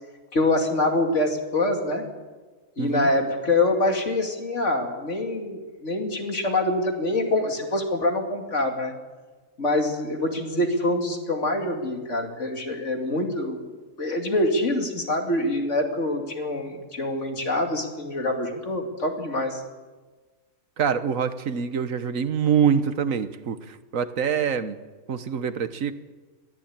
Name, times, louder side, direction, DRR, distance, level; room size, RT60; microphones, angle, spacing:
voice 1, 0.3-2.1 2.8-8.9 9.6-13.6 14.0-19.6, left 2 dB, 65° left, 3 dB, 2.9 m, -25 dB
voice 2, 2.8-3.1 20.8-24.8 25.1-25.9, right 7 dB, 85° right, 12 dB, 1.5 m, -25 dB
21.5 x 14.5 x 8.8 m, 1.3 s
omnidirectional pair, 1.4 m